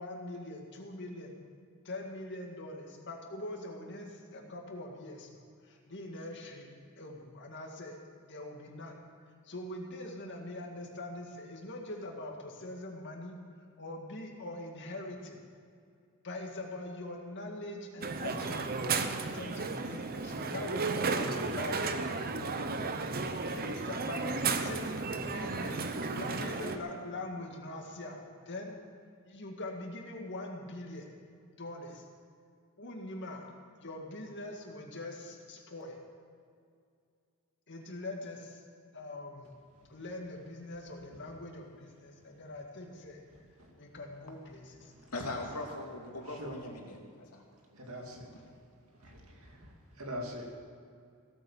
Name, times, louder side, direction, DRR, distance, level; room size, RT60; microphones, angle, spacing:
voice 1, 0.0-1.4 1.8-9.0 9.4-13.4 13.8-15.4 16.2-22.3 23.4-24.9 25.1-28.8 29.2-31.1 31.5-32.0 32.8-33.5 33.8-36.0 37.7-38.6 38.9-39.5 39.9-43.2 43.7-44.9 48.3-48.5, left 2 dB, 55° left, 1 dB, 2.1 m, -43 dB
Crowd, 18.0-26.8, right 4 dB, 45° right, 0.8 m, -33 dB
voice 2, 45.1-47.4 48.1-48.2, left 2 dB, 80° left, 0 dB, 2.5 m, -40 dB
voice 3, 47.7-48.3 49.0-49.7 50.0-50.6, equal, 65° right, 1 dB, 2.4 m, -42 dB
16.5 x 8.5 x 7.2 m, 2.3 s
head